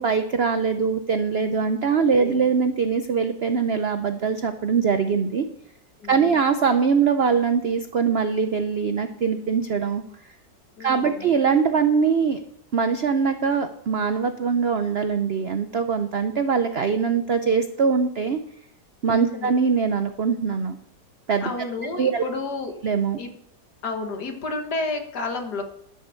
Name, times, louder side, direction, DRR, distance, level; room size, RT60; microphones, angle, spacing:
voice 1, 0.0-5.5 6.1-10.0 10.8-12.4 12.7-18.4 19.0-20.8 21.3-21.5 22.0-22.2 22.8-23.2, right 6 dB, 70° right, 9 dB, 0.6 m, -22 dB
voice 2, 6.0-6.4 10.8-11.3 19.1-19.6 21.4-22.7 23.2-23.3 23.8-25.6, left 3 dB, 65° left, 6 dB, 1.9 m, -31 dB
11.5 x 7.4 x 6.9 m, 0.74 s
omnidirectional pair, 1.9 m